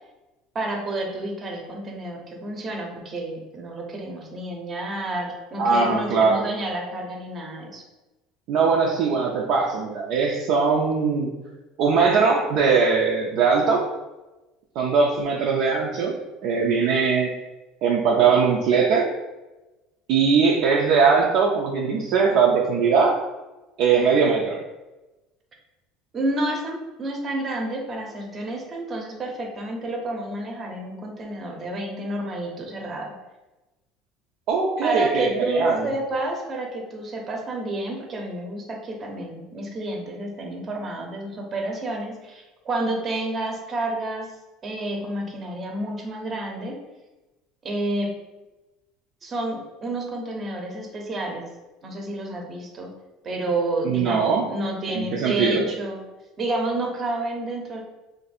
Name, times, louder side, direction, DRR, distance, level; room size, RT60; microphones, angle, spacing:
voice 1, 0.5-7.8 26.1-33.1 34.8-44.3 44.6-46.8 47.6-48.1 49.2-51.5 51.8-52.9 53.2-56.0 56.4-57.8, right 1 dB, 30° right, 1 dB, 0.8 m, -29 dB
voice 2, 5.6-6.4 8.5-11.3 11.8-13.9 14.8-16.1 16.4-17.3 17.8-19.1 20.1-23.2 23.8-24.6 34.5-35.9 53.8-54.6 54.9-55.6, right 5 dB, 65° right, -3 dB, 0.5 m, -20 dB
2.6 x 2.6 x 4.1 m, 1.1 s
supercardioid pair, 115°, 0 cm